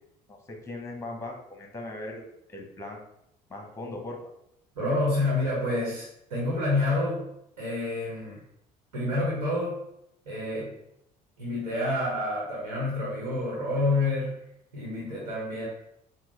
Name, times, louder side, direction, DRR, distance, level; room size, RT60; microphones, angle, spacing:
voice 1, 0.3-3.1 3.5-4.2, left 2 dB, 15° left, 1 dB, 1.2 m, -39 dB
voice 2, 4.7-7.2 7.6-8.4 8.9-9.8 10.3-10.7 11.4-14.3 14.7-15.7, left 2 dB, 70° right, -5 dB, 1.4 m, -28 dB
6.0 x 2.4 x 3.4 m, 0.80 s
figure-of-eight pair, 55°, 21 cm